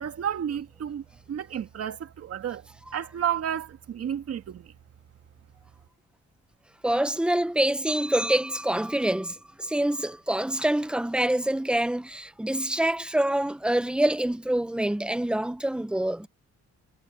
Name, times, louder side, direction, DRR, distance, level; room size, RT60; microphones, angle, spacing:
voice 1, 0.0-1.0 1.3-2.0 2.3-2.6 2.9-3.7 4.0-4.4, right 9 dB, 55° right, 1.9 m, -30 dB
voice 2, 6.8-16.3, right 1 dB, 5° right, 0.9 m, -26 dB
cardioid pair, 125°, 29 cm